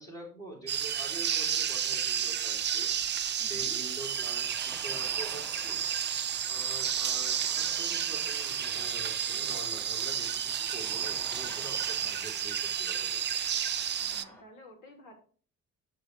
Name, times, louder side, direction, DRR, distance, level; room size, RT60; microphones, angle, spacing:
voice 1, 0.0-2.9 3.4-13.2 14.2-14.3, right 1 dB, 85° left, -4 dB, 2.7 m, -46 dB
sound 1, 0.7-14.2, right 9 dB, 30° right, 0.5 m, -31 dB
sound 2, 4.0-14.4, equal, 5° left, 1.4 m, -51 dB
voice 2, 14.0-15.1, equal, 50° left, -1 dB, 2.8 m, -52 dB
8.1 x 6.9 x 3.2 m, 0.41 s
figure-of-eight pair, 40°, 39 cm